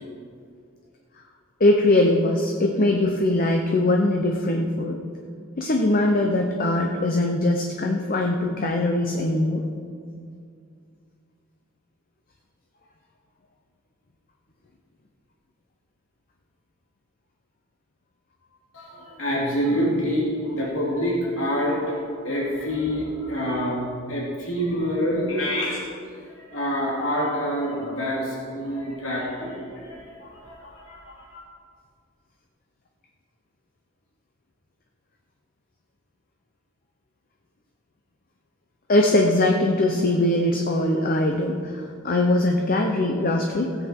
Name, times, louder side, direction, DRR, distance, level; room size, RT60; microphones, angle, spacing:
voice 1, 1.6-5.0 5.6-9.6 38.9-43.8, left 1 dB, 45° left, 2 dB, 0.8 m, -21 dB
voice 2, 18.7-25.8 26.3-31.4, equal, 75° left, -4 dB, 2.6 m, -27 dB
16.0 x 8.2 x 4.5 m, 2.3 s
head